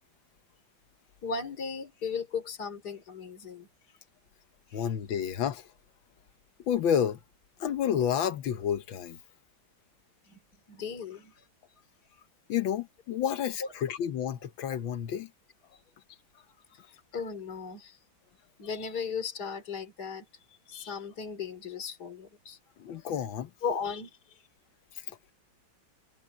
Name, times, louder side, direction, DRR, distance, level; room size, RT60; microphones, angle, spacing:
voice 1, 1.2-3.7 4.7-4.8 10.3-10.4 10.7-11.4 13.6-13.7 16.7-18.0 18.6-20.2 20.7-22.6 23.0-23.1 23.6-24.4, left 5 dB, 55° left, 3.2 m, -36 dB
voice 2, 4.7-5.7 6.6-7.2 7.6-9.2 12.5-15.3 22.8-23.5 25.1-25.2, left 9 dB, 85° left, 1.8 m, -30 dB
omnidirectional pair, 2.1 m